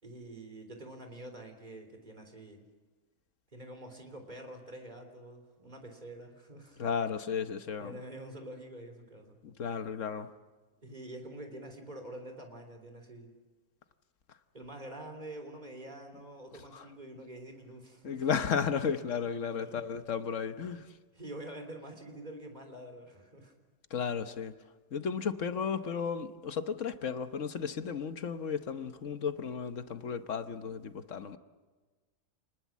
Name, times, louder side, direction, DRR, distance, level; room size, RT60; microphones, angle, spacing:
voice 1, 0.0-2.6 3.5-6.8 7.8-9.4 10.8-13.3 14.5-18.3 19.6-19.8 21.1-23.5, right 1 dB, 30° right, 5 dB, 3.6 m, -46 dB
voice 2, 6.8-8.0 9.4-10.3 16.7-16.8 18.0-20.9 23.9-24.5 24.9-31.4, left 6 dB, 60° left, 10 dB, 1.3 m, -34 dB
28.5 x 20.0 x 7.4 m, 1.3 s
omnidirectional pair, 1.5 m